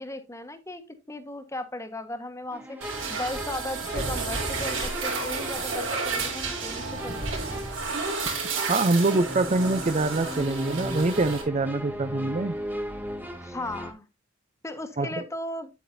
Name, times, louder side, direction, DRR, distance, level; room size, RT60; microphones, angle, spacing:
voice 1, 0.0-2.8 3.1-7.2 7.5-7.6 13.4-14.0 14.6-15.7, left 1 dB, 15° left, 1.2 m, -36 dB
sound 1, 2.5-13.9, equal, 10° right, 1.2 m, -38 dB
sound 2, 2.8-11.4, right 4 dB, 80° right, 3.6 m, -31 dB
voice 2, 8.7-12.6 15.0-15.2, right 2 dB, 35° right, 0.6 m, -25 dB
9.3 x 8.2 x 2.7 m
head